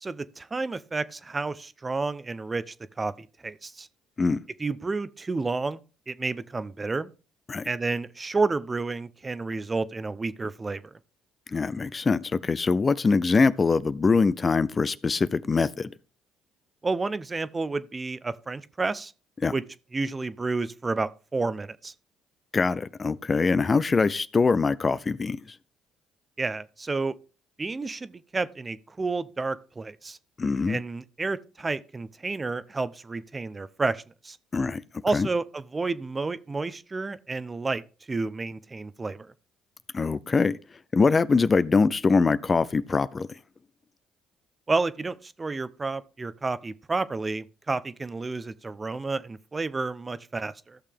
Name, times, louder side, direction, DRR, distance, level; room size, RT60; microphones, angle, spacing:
voice 1, 0.0-3.9 4.6-5.8 6.1-7.1 7.7-10.8 16.8-19.1 19.5-19.6 19.9-21.9 26.4-27.1 27.6-30.2 30.7-34.4 35.0-37.8 38.1-39.3 44.7-50.8, right 3 dB, 25° right, 0.7 m, -30 dB
voice 2, 11.5-15.9 19.4-19.5 22.5-25.4 30.4-30.8 34.5-34.8 35.1-35.3 39.9-40.6 40.9-43.3, left 4 dB, 35° left, 0.6 m, -23 dB
15.0 x 6.6 x 3.6 m
hypercardioid pair, 55°, 0 cm